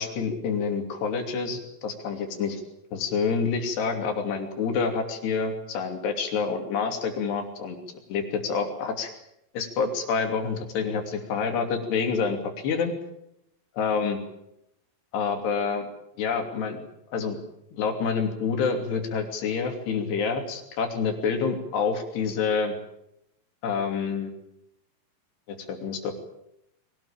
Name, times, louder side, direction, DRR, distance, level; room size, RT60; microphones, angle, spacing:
voice 1, 0.0-2.6 2.9-7.8 8.1-9.1 9.5-12.9 13.8-14.2 15.1-15.9 16.2-16.8 17.1-17.4 17.7-22.8 23.6-24.3 25.5-26.1, left 5 dB, 75° left, 5 dB, 5.0 m, -27 dB
23.0 x 18.5 x 8.9 m, 0.82 s
omnidirectional pair, 4.9 m